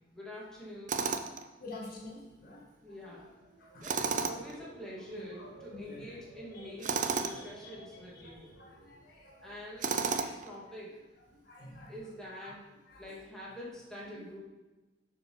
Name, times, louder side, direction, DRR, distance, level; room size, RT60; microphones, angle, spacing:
voice 1, 0.1-1.1 2.8-3.3 3.8-8.6 9.4-11.0 11.9-12.6 13.0-14.4, left 1 dB, 5° left, -7 dB, 2.1 m, -46 dB
Tools, 0.9-1.5 3.8-4.6 6.8-7.4 9.8-10.5, right 5 dB, 45° right, 0.5 m, -32 dB
voice 2, 1.6-2.6 3.2-3.3 3.6-4.7 5.4-6.2 6.5-7.8 8.1-9.5 10.2-10.4 11.3-11.9 12.4-12.5 12.9-13.2 14.1-14.4, left 2 dB, 55° left, -2 dB, 1.5 m, -50 dB
sound 1, 3.0-10.2 10.6-11.0, right 1 dB, 75° right, 2.2 m, -55 dB
7.6 x 4.8 x 5.5 m, 1.1 s
head